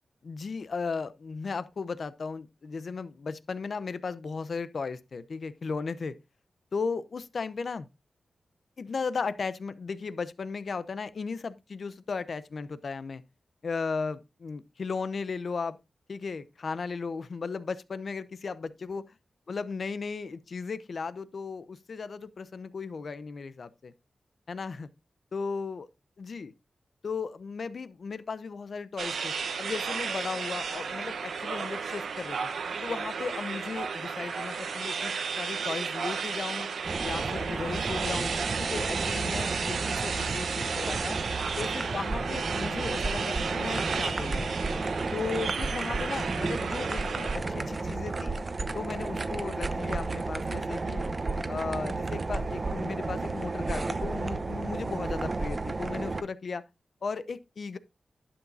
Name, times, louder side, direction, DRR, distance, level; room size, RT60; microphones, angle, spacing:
voice 1, 0.2-6.2 6.7-7.9 8.8-13.2 13.6-15.8 16.1-19.1 19.5-23.9 24.5-24.9 25.3-25.9 26.2-26.5 27.0-32.4 32.8-36.7 37.0-38.3 38.6-41.2 41.6-44.5 45.1-48.4 48.7-51.0 51.5-56.6 57.0-57.8, left 4 dB, 65° left, 0.7 m, -36 dB
sound 1, 29.0-47.4, right 5 dB, 90° right, 1.0 m, -33 dB
sound 2, 36.8-56.2, right 3 dB, 40° right, 0.9 m, -32 dB
11.5 x 7.2 x 2.7 m
wide cardioid pair, 85°, 0 cm